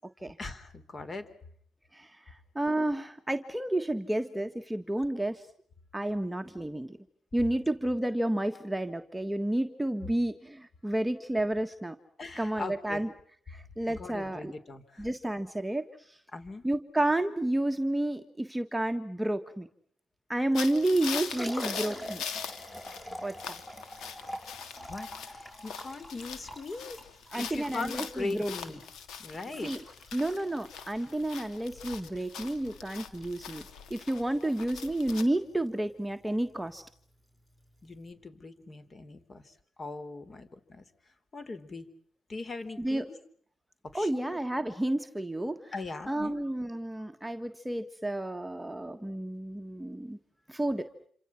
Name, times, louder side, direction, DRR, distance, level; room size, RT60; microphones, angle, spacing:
voice 1, 0.4-1.3 12.2-13.0 14.0-15.1 16.3-16.6 24.9-27.0 27.3-28.8 29.2-29.7 37.8-39.5 39.8-40.8 41.3-41.9 42.3-43.2 43.9-44.4 45.7-46.5, left 3 dB, 35° left, 12 dB, 4.2 m, -40 dB
voice 2, 1.9-5.4 5.9-7.0 7.3-12.0 12.4-13.1 13.5-14.5 15.0-16.2 16.6-19.7 20.3-22.2 23.2-23.3 27.3-28.5 29.6-29.8 30.1-33.6 33.9-36.8 42.8-43.1 43.9-45.7 46.1-50.2 50.5-50.9, right 1 dB, 5° right, 6 dB, 1.6 m, -31 dB
sound 1, 20.5-35.2, left 7 dB, 80° left, 3.0 m, -42 dB
Liquid, 20.8-38.1, equal, 15° left, 6.5 m, -46 dB
28.0 x 27.0 x 5.9 m, 0.62 s
cardioid pair, 90°, 0 cm